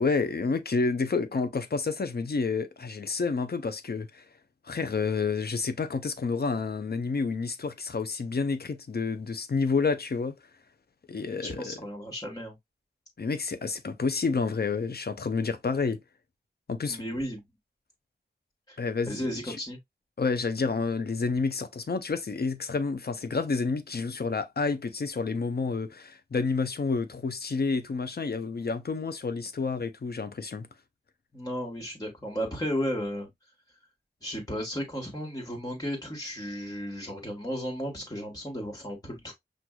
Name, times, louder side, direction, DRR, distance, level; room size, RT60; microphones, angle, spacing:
voice 1, 0.0-4.2 4.7-10.4 11.1-11.7 13.2-16.0 16.7-17.0 18.8-19.6 20.2-30.7, left 4 dB, 60° left, 0.6 m, -29 dB
voice 2, 11.4-12.5 16.9-17.4 18.7-18.8 19.0-19.8 31.3-33.3 34.2-39.3, equal, 20° left, 1.4 m, -34 dB
6.1 x 2.5 x 2.3 m
wide cardioid pair, 50°, 18 cm